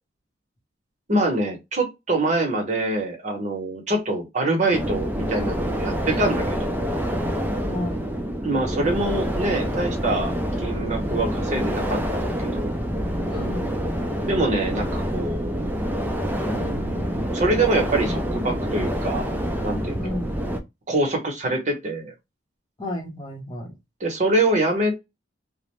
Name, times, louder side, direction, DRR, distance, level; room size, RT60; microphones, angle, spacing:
voice 1, 1.1-6.7 8.4-10.3 10.6-12.8 14.3-15.6 16.4-20.2 20.9-22.1 24.0-25.0, right 2 dB, 40° right, 0.8 m, -25 dB
sound 1, 4.7-20.6, equal, 10° right, 0.4 m, -27 dB
voice 2, 7.7-8.0 13.3-13.7 20.0-20.4 22.8-23.7, left 1 dB, 25° left, 0.7 m, -32 dB
2.5 x 2.0 x 3.0 m
head